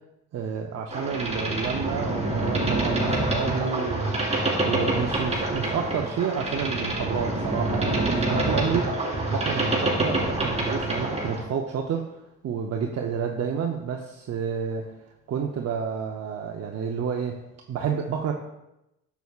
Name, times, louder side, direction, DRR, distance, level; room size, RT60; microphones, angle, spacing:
voice 1, 0.3-12.1 12.4-14.9 15.3-17.4 17.7-18.3, right 7 dB, 55° right, 1 dB, 0.7 m, -30 dB
Boat Water vehicle, 0.9-11.4, right 2 dB, 20° right, 2.4 m, -26 dB
9.0 x 6.9 x 2.4 m, 0.90 s
cardioid pair, 90°, 30 cm